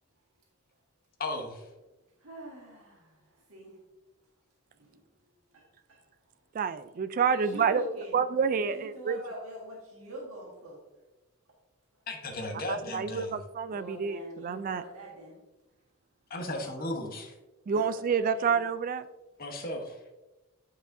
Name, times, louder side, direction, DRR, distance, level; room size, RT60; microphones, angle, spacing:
voice 1, 1.2-1.7 12.1-13.4 16.3-17.3 19.4-20.0, left 1 dB, 45° left, 3 dB, 1.0 m, -35 dB
voice 2, 2.2-3.2 3.5-3.8 4.8-5.0 5.5-5.6 5.9-6.0 7.3-8.2 8.6-10.8 13.7-15.4 16.4-16.7 17.8-18.6, right 1 dB, 80° right, -3 dB, 1.7 m, -44 dB
voice 3, 6.5-7.8 8.1-9.2 12.7-14.8 17.7-19.1, right 6 dB, 40° right, 12 dB, 0.3 m, -28 dB
8.9 x 4.8 x 2.6 m, 1.1 s
head